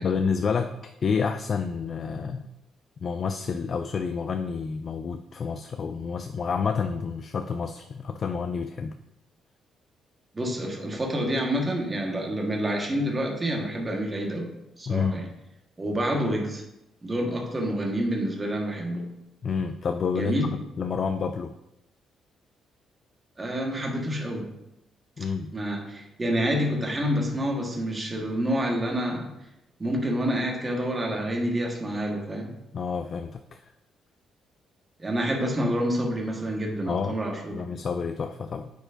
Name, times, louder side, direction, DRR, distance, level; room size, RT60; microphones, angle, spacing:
voice 1, 0.0-2.5 3.0-8.9 14.9-15.2 19.4-20.3 20.8-21.5 25.2-25.5 32.7-33.6 36.9-37.2 37.5-38.7, left 5 dB, 50° left, 8 dB, 0.3 m, -29 dB
voice 2, 10.3-14.5 14.8-15.3 15.8-16.6 17.0-19.1 20.1-20.5 23.4-24.5 25.5-29.3 29.8-32.5 35.0-37.6, equal, 25° right, 0 dB, 1.4 m, -28 dB
8.7 x 4.7 x 2.6 m, 0.89 s
cardioid pair, 90°, 0 cm